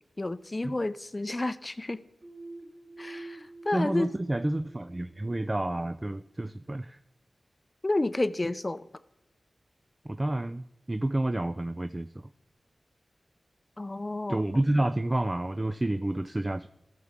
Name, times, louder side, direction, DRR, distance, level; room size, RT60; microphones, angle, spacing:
voice 1, 0.2-2.0 3.0-4.1 7.8-8.8 13.8-14.4, left 2 dB, 30° left, 14 dB, 0.5 m, -30 dB
sound 1, 2.2-5.9, right 2 dB, 55° right, 1.2 m, -46 dB
voice 2, 3.7-7.0 10.1-12.1 14.3-16.7, right 1 dB, 25° right, 11 dB, 0.3 m, -29 dB
15.0 x 6.7 x 3.5 m, 0.95 s
wide cardioid pair, 65°, 0 cm